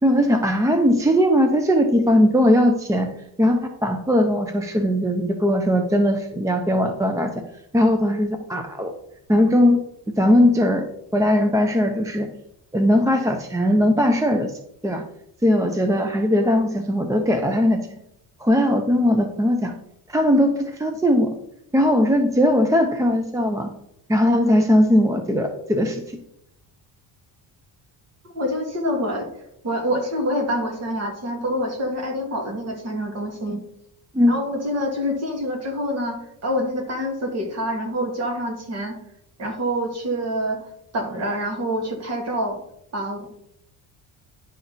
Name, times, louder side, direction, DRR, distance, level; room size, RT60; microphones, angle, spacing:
voice 1, 0.0-3.1 3.4-7.4 7.7-8.9 9.3-9.8 10.2-10.8 11.1-12.3 12.7-14.6 14.8-15.0 15.4-18.0 18.4-19.7 20.1-21.3 21.7-23.7 24.1-26.2 34.1-34.4, equal, 10° right, 5 dB, 0.5 m, -19 dB
voice 2, 28.3-29.3 29.6-33.7 34.3-39.0 39.4-40.7 40.9-42.6 42.9-43.3, equal, 35° right, 2 dB, 2.1 m, -26 dB
10.5 x 6.1 x 4.0 m, 0.77 s
cardioid pair, 170°, 42 cm